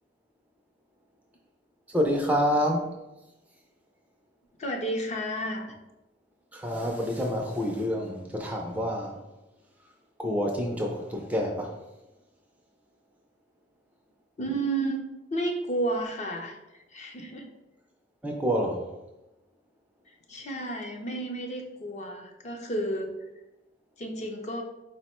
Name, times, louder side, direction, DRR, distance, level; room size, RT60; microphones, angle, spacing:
voice 1, 1.9-2.9 6.5-9.2 10.2-11.7 18.2-18.9, equal, 10° right, 1 dB, 0.4 m, -27 dB
voice 2, 4.6-5.8 14.4-15.0 15.3-16.6 16.9-17.5 20.1-23.1 24.0-24.6, right 1 dB, 40° left, 2 dB, 0.5 m, -31 dB
4.4 x 2.1 x 4.2 m, 0.98 s
head